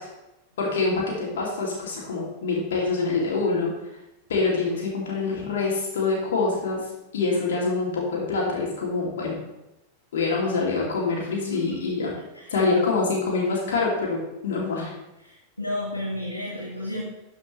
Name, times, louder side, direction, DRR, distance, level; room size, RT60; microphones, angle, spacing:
voice 1, 0.6-3.7 4.3-6.8 7.1-9.4 10.1-12.1 12.5-14.9, left 3 dB, 60° left, -3 dB, 2.5 m, -25 dB
voice 2, 12.0-12.5 15.2-17.0, left 1 dB, 85° left, -5 dB, 1.5 m, -33 dB
12.0 x 5.2 x 3.2 m, 0.92 s
figure-of-eight pair, 90°, 0 cm